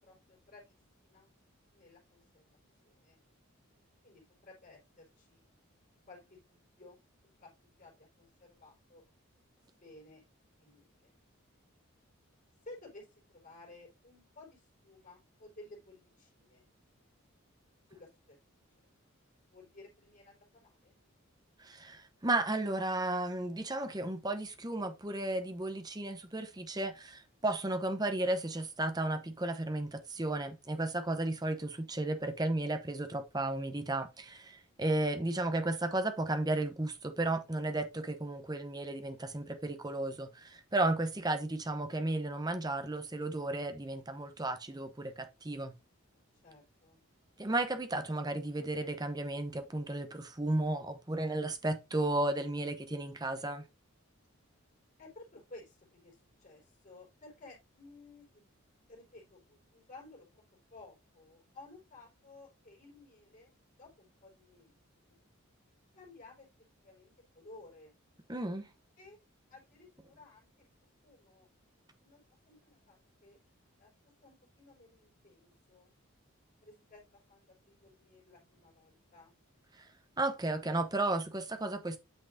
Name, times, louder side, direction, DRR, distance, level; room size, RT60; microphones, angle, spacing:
voice 1, 0.0-1.3 1.7-2.4 2.8-3.2 4.0-5.8 6.1-7.0 7.4-7.5 7.8-9.0 9.8-10.2 10.6-11.1 12.6-16.7 17.9-18.4 19.5-21.0 32.0-32.5 46.1-47.0 55.0-58.4 58.9-60.4 60.7-64.8 65.0-65.2 65.9-66.5 66.8-68.0 69.0-69.2 69.5-70.7 71.0-73.4 73.8-73.9 74.2-75.9 76.6-79.3, left 2 dB, 35° left, 4.3 m, -56 dB
voice 2, 21.6-45.7 47.4-53.6 68.3-68.7 79.8-79.9 80.2-82.0, right 2 dB, 20° right, 0.7 m, -34 dB
9.1 x 5.8 x 2.6 m
head